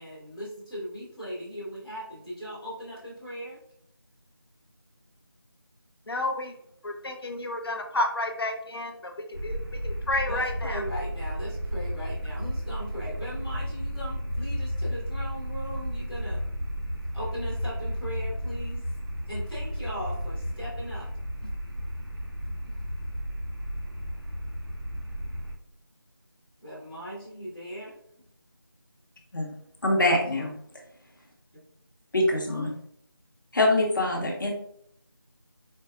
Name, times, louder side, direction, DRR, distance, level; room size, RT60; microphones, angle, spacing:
voice 1, 0.0-3.6 10.3-16.4 17.1-18.8 19.3-21.1 22.6-22.8 26.6-27.9 30.1-30.5, equal, ahead, -22 dB, 0.4 m, -38 dB
voice 2, 6.1-6.5 6.8-9.6 9.8-10.8, left 1 dB, 85° left, 4 dB, 0.6 m, -31 dB
sound 1, 9.3-25.5, equal, 75° right, 0.9 m, -33 dB
voice 3, 29.8-30.5 32.1-32.7 33.5-34.5, left 1 dB, 55° left, 0 dB, 1.0 m, -24 dB
4.5 x 2.3 x 2.4 m, 0.71 s
figure-of-eight pair, 170°, 12 cm